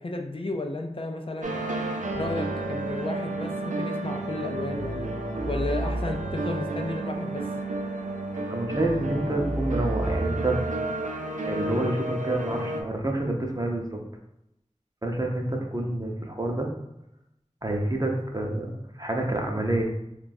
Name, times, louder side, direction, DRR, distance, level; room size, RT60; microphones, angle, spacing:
voice 1, 0.0-1.5 2.1-5.1 5.5-7.5, left 2 dB, 45° left, 3 dB, 0.4 m, -33 dB
sound 1, 1.4-12.8, right 2 dB, 80° right, 0.4 m, -30 dB
voice 2, 8.5-10.6 11.5-14.0 15.0-16.7 17.6-19.8, right 1 dB, 30° right, 1 dB, 0.6 m, -28 dB
2.6 x 2.3 x 4.0 m, 0.84 s
wide cardioid pair, 40°, 13 cm